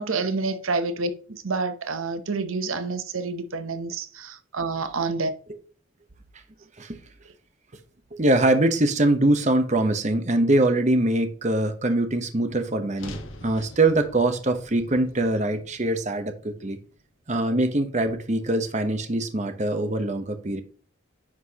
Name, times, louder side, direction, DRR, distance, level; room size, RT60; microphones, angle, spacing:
voice 1, 0.0-5.3, right 3 dB, 85° right, 0.8 m, -28 dB
voice 2, 8.1-16.8 17.3-20.6, right 2 dB, 35° right, 0.9 m, -23 dB
sound 1, 13.0-17.2, left 1 dB, 70° left, 1.2 m, -45 dB
9.7 x 6.1 x 2.9 m
head